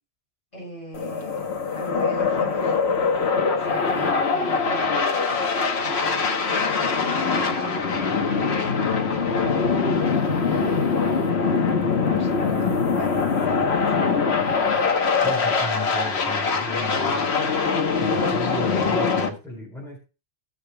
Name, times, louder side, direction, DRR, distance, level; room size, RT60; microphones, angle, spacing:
voice 1, 0.5-1.5 1.7-2.8 3.2-5.5 5.8-11.6 12.0-14.2, right 1 dB, 35° left, -5 dB, 6.7 m, -39 dB
sound 1, 0.9-19.3, left 5 dB, 65° left, 1.4 m, -23 dB
voice 2, 15.2-17.3 18.0-20.0, left 1 dB, ahead, -3 dB, 4.2 m, -35 dB
18.5 x 6.9 x 2.2 m, 0.31 s
omnidirectional pair, 1.2 m